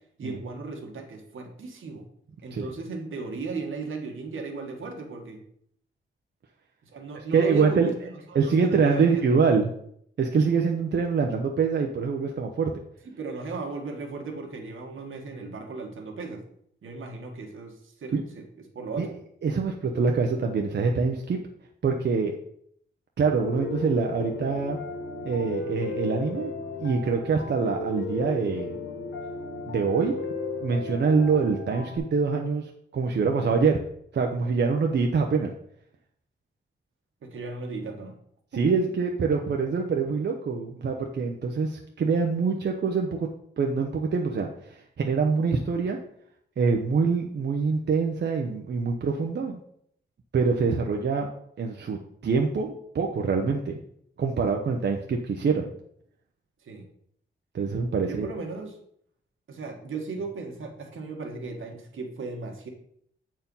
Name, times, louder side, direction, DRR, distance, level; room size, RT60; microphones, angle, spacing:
voice 1, 0.2-2.0 2.4-5.4 6.8-9.2 13.0-16.4 16.8-18.4 18.7-19.2 37.2-38.1 38.5-38.6 56.6-56.9 58.0-58.8 59.5-62.7, right 3 dB, 85° right, 1 dB, 1.6 m, -36 dB
voice 2, 7.3-7.9 8.3-9.7 10.2-12.7 18.1-18.2 19.0-19.1 19.4-21.4 21.8-22.4 23.2-24.8 25.2-26.5 26.8-28.7 29.7-30.1 30.6-33.8 34.1-35.5 38.6-43.3 43.6-46.0 46.6-49.6 50.3-51.3 51.6-53.8 54.2-55.7 57.5-58.3, right 5 dB, 60° right, 2 dB, 0.8 m, -25 dB
Piano, 23.3-32.0, left 3 dB, 90° left, 1.5 m, -34 dB
7.5 x 4.5 x 5.4 m, 0.69 s
wide cardioid pair, 125°, 20 cm